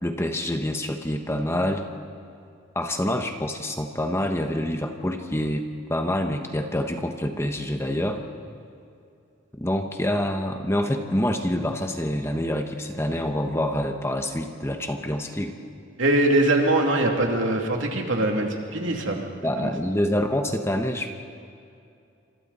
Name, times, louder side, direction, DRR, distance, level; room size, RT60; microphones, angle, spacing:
voice 1, 0.0-1.9 2.7-8.2 9.5-15.6 19.4-21.1, left 1 dB, 15° left, 5 dB, 1.1 m, -26 dB
voice 2, 16.0-19.3 19.6-19.7, right 1 dB, 70° right, 1 dB, 2.8 m, -22 dB
28.5 x 26.0 x 4.2 m, 2.5 s
head